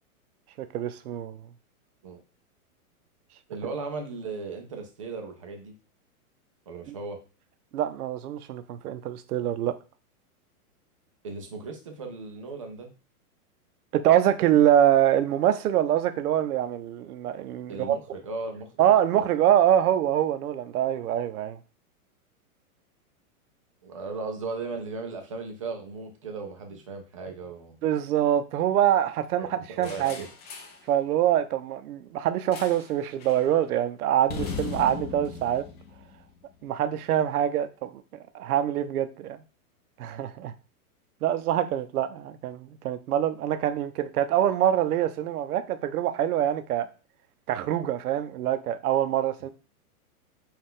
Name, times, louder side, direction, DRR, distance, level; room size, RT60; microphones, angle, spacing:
voice 1, 0.6-1.4 6.9-7.0 7.7-9.8 13.9-18.0 18.8-21.6 27.8-30.3 30.9-35.6 36.6-38.0 38.3-39.4 40.0-40.5 41.2-46.9 47.5-49.5, right 11 dB, 75° right, 0.6 m, -25 dB
voice 2, 3.5-5.7 6.7-7.2 11.2-12.9 17.7-19.2 23.8-27.8 29.7-30.3, right 4 dB, 25° right, 0.3 m, -37 dB
sound 1, 29.8-30.8 32.5-32.9 33.2-33.5 34.3-36.6, left 6 dB, 25° left, 0.6 m, -38 dB
5.5 x 2.4 x 3.5 m
hypercardioid pair, 150°, 45 cm